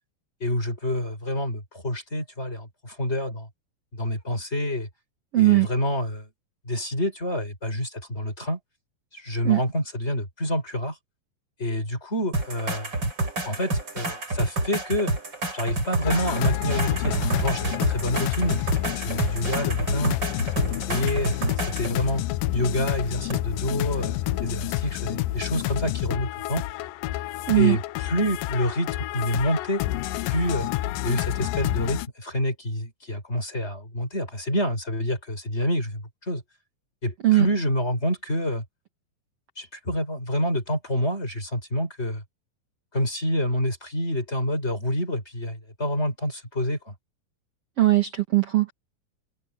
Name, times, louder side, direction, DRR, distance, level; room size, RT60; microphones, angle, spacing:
voice 1, 0.4-3.5 3.9-4.9 5.4-6.3 6.7-8.6 9.1-11.0 11.6-12.9 13.4-15.1 15.5-18.6 18.9-20.2 20.6-22.2 22.5-26.6 27.6-29.8 30.2-30.7 31.0-36.4 37.0-38.6 39.6-42.2 42.9-46.9, left 1 dB, 15° left, 5.6 m, -27 dB
voice 2, 5.3-5.7 9.4-9.6 27.5-27.8 37.2-37.5 47.8-48.7, right 17 dB, 50° right, 2.3 m, -19 dB
sound 1, 12.3-21.9 23.3-23.4, right 2 dB, 30° right, 6.0 m, -29 dB
sound 2, 16.0-32.1, left 16 dB, 80° left, 2.2 m, -29 dB
omnidirectional pair, 4.2 m